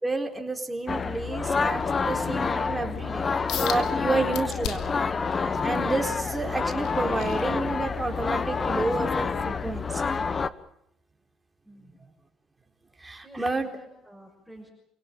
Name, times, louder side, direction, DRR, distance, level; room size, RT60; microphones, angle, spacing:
voice 1, 0.0-3.3 3.6-4.9 5.6-10.1 13.0-13.7, right 2 dB, 15° right, 3 dB, 4.1 m, -30 dB
sound 1, 0.9-10.5, left 5 dB, 30° left, 1.2 m, -28 dB
sound 2, 3.5-3.8 4.3-5.0 5.5-8.1 8.6-8.8 9.3-9.4, left 9 dB, 70° left, 2.8 m, -36 dB
voice 2, 11.7-12.1 13.2-14.7, right 1 dB, 5° left, 0 dB, 6.1 m, -49 dB
28.5 x 17.5 x 8.8 m, 0.75 s
cardioid pair, 100°, 0 cm